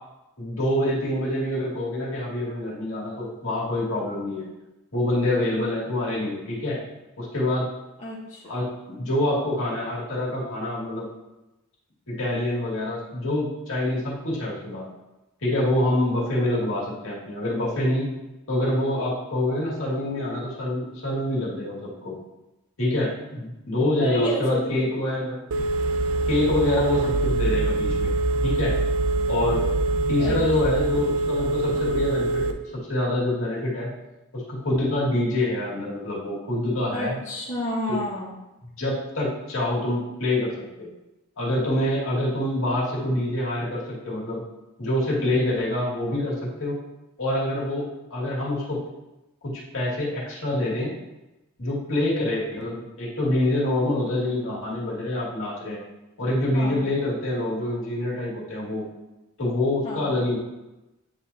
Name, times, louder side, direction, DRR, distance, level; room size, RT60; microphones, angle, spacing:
voice 1, 0.4-4.5 4.9-6.8 7.2-7.6 8.5-11.1 12.1-14.9 15.4-18.1 18.5-22.1 22.8-25.4 26.3-28.1 28.4-28.7 29.3-29.6 30.1-32.5 32.9-33.9 34.3-37.2 37.9-38.0 38.8-40.5 40.8-40.9 41.4-44.4 44.8-46.8 47.2-47.8 48.1-48.8 49.4-50.9 51.6-55.8 56.2-58.9 59.4-60.4, left 1 dB, 70° left, -6 dB, 2.2 m, -26 dB
voice 2, 8.0-8.6 24.0-24.9 30.2-30.4 36.9-38.3 56.5-56.8 59.8-60.1, equal, 35° left, -7 dB, 1.1 m, -29 dB
Telephone, 25.5-32.5, right 2 dB, 65° right, 0.5 m, -24 dB
9.6 x 3.8 x 2.8 m, 0.98 s
head